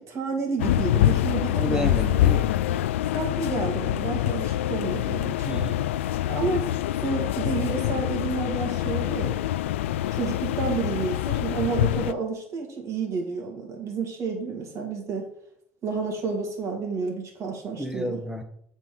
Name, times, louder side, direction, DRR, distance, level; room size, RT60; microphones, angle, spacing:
voice 1, 0.0-2.0 3.1-5.6 6.3-6.6 7.0-9.4 10.1-15.3 15.8-18.2, right 5 dB, 50° right, 1 dB, 2.8 m, -30 dB
sound 1, 0.6-12.1, left 13 dB, 85° left, 0.3 m, -25 dB
voice 2, 1.5-2.5 5.4-5.9 11.5-11.8 17.8-18.4, equal, 10° right, 6 dB, 1.5 m, -31 dB
7.7 x 4.5 x 5.4 m, 0.68 s
hypercardioid pair, 70°, 7 cm